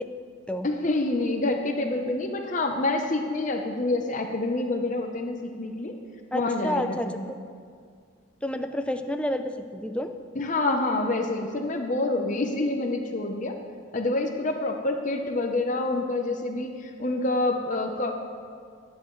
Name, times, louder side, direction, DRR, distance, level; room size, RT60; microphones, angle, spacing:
voice 1, 0.6-5.9 6.3-7.3 10.4-13.6 13.9-18.1, left 2 dB, 40° left, 3 dB, 0.8 m, -27 dB
voice 2, 6.3-7.4 8.4-10.1, left 1 dB, 5° left, 6 dB, 0.5 m, -30 dB
23.0 x 9.4 x 3.2 m, 2.1 s
head